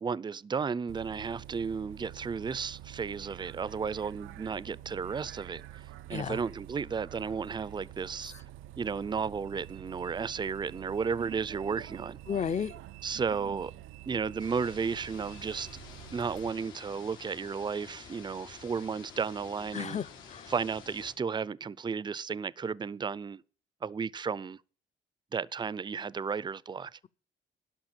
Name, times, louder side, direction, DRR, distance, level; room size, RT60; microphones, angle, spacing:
voice 1, 0.0-8.3 8.8-12.2 13.0-13.7 14.1-15.7 16.1-20.0 20.5-23.4 23.8-24.6 25.3-27.0, right 5 dB, 20° right, 0.5 m, -33 dB
Bus, 0.9-16.5, right 13 dB, 90° right, 0.4 m, -47 dB
voice 2, 12.3-12.7 19.7-20.5, left 7 dB, 35° left, 0.6 m, -33 dB
sound 1, 14.4-21.1, left 6 dB, 90° left, 3.4 m, -50 dB
11.5 x 5.6 x 8.9 m
cardioid pair, 90°, 20 cm